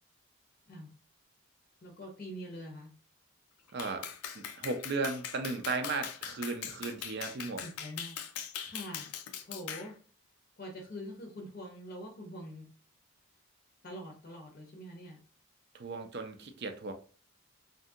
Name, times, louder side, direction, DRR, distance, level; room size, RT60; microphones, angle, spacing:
voice 1, 1.8-2.9 7.6-9.1 9.4-10.0 10.6-12.7 13.8-15.2, equal, 40° left, 0 dB, 0.5 m, -45 dB
voice 2, 3.7-4.1 4.3-7.6 15.7-16.9, right 3 dB, 50° right, 6 dB, 0.4 m, -36 dB
Clapping, 3.8-9.9, left 8 dB, 90° left, 0.4 m, -41 dB
2.6 x 2.6 x 2.3 m, 0.39 s
head